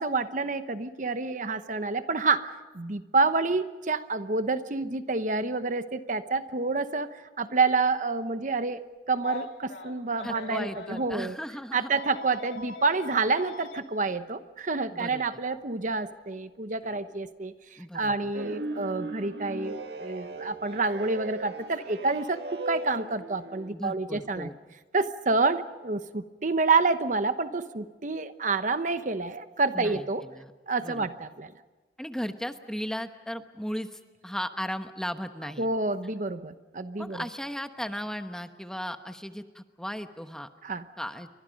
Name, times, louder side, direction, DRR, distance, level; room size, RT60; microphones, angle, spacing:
voice 1, 0.0-11.3 11.7-24.5 24.9-30.2 30.7-31.5 35.6-37.2 40.6-40.8, right 3 dB, 45° right, 11 dB, 0.9 m, -28 dB
Telephone, 9.2-11.0 11.9-13.8 15.2-15.3 16.8-17.0, left 3 dB, 60° left, 3.0 m, -42 dB
voice 2, 10.2-12.0 14.9-15.2 17.8-18.3 23.7-24.6 29.7-30.5 30.8-31.1 32.0-35.7 37.0-40.5 41.0-41.3, equal, 5° left, 7 dB, 1.0 m, -36 dB
sound 1, 18.3-23.7, right 2 dB, 60° right, 2.0 m, -38 dB
29.5 x 24.5 x 5.3 m, 1.3 s
head